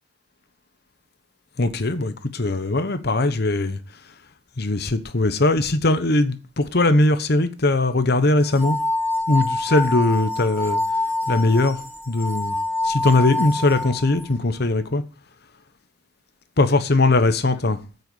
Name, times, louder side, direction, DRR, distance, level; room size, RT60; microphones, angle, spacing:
voice 1, 1.6-3.8 4.6-8.8 9.3-10.8 11.3-11.8 12.1-12.5 12.8-15.0 16.6-17.8, left 2 dB, 60° left, 1.1 m, -20 dB
sound 1, 8.4-14.3, left 2 dB, 10° left, 3.1 m, -26 dB
9.3 x 8.1 x 6.3 m
head